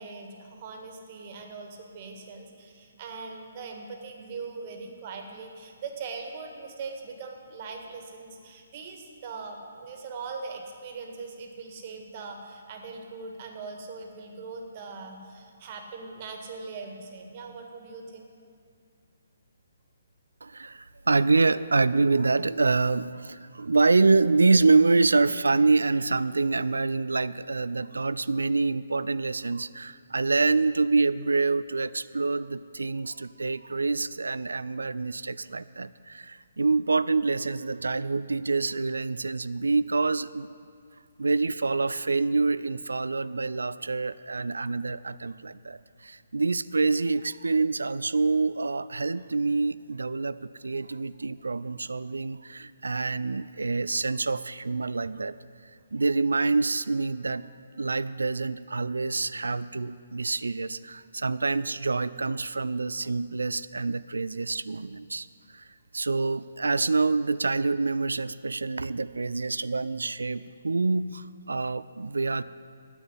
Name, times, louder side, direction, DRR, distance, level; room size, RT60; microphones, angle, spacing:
voice 1, 0.0-18.3, right 4 dB, 35° right, 3 dB, 1.7 m, -41 dB
voice 2, 20.4-40.5 41.2-55.4 55.9-57.5 57.8-65.3 65.5-65.7 65.9-72.4, right 3 dB, 70° right, 16 dB, 0.3 m, -26 dB
9.9 x 8.7 x 9.7 m, 2.3 s
figure-of-eight pair, 135°, 0 cm